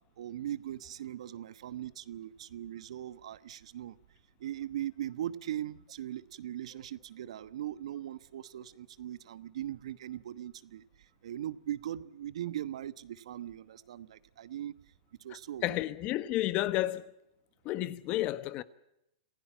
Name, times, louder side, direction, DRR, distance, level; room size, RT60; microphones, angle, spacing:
voice 1, 0.2-3.9 4.4-10.8 11.2-14.7 15.2-15.8, right 11 dB, 70° right, 1.1 m, -39 dB
voice 2, 15.6-17.1 17.6-18.6, left 15 dB, 35° left, 1.2 m, -31 dB
27.5 x 16.0 x 7.3 m
hypercardioid pair, 130°, 3 cm